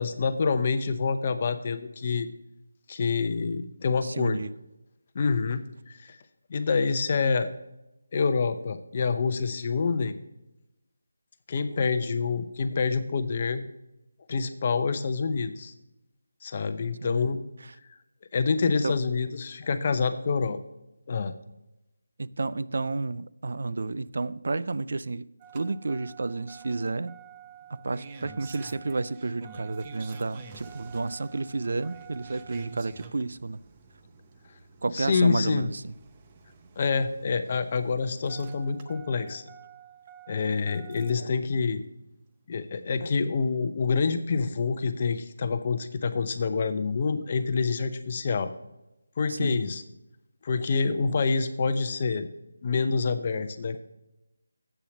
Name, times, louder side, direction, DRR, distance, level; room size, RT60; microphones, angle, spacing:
voice 1, 0.0-2.3 2.9-4.4 5.1-6.2 6.5-7.5 8.1-10.1 11.5-13.7 14.3-15.7 16.4-17.4 18.3-20.6 21.1-21.3 34.9-35.7 36.8-39.5 40.3-41.8 42.5-48.5 49.2-49.8 50.4-52.3 52.6-53.8, left 4 dB, 35° left, 0.7 m, -27 dB
voice 2, 4.0-4.5 17.0-17.2 18.8-18.9 22.2-25.2 25.5-27.1 27.8-33.6 34.8-35.8 49.3-49.6, right 3 dB, 60° right, 0.3 m, -31 dB
Engine starting, 25.4-41.3 42.6-42.7, right 7 dB, 25° right, 0.7 m, -49 dB
8.1 x 6.9 x 5.9 m
figure-of-eight pair, 165°, 0 cm